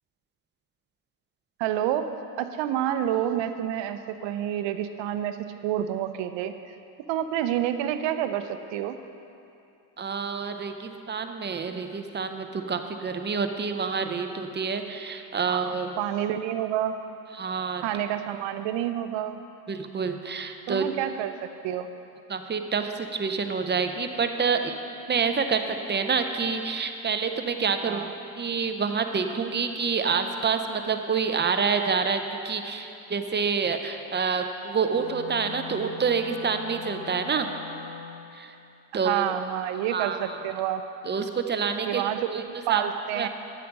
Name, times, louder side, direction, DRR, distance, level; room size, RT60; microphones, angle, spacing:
voice 1, 1.6-2.1 2.4-6.5 7.1-9.0 15.5-17.0 17.8-19.4 20.7-21.9 27.8-28.1 39.0-40.9 41.9-43.3, right 11 dB, 60° right, 9 dB, 0.8 m, -28 dB
voice 2, 10.0-16.0 17.3-17.8 19.7-20.9 22.3-24.8 25.1-28.0 28.4-37.5 38.3-38.5 38.9-39.3 39.9-40.4 41.0-42.4 42.7-42.8 43.2-43.3, right 5 dB, 20° right, 7 dB, 0.6 m, -27 dB
Wind instrument woodwind instrument, 34.9-38.3, left 6 dB, 75° left, 2.1 m, -41 dB
9.8 x 7.6 x 5.3 m, 2.7 s
supercardioid pair, 90°, 49 cm